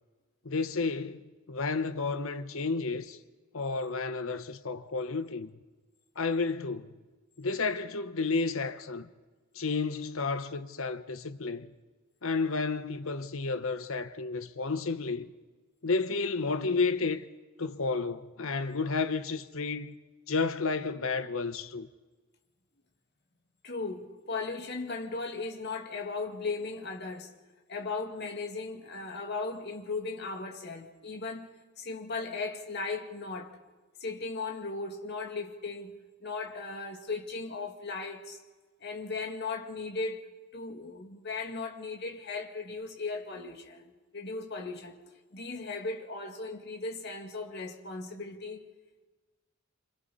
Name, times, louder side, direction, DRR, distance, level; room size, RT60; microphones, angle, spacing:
voice 1, 0.4-3.2 3.5-5.5 6.2-6.9 7.4-9.1 9.5-11.7 12.2-15.3 15.8-17.2 17.6-19.9 20.3-21.9, left 4 dB, 70° left, 1.1 m, -31 dB
voice 2, 23.6-27.3 27.7-33.6 34.0-38.4 38.8-40.2 40.5-44.9 45.3-48.7, left 3 dB, 50° left, 2.2 m, -37 dB
28.0 x 26.0 x 4.2 m
head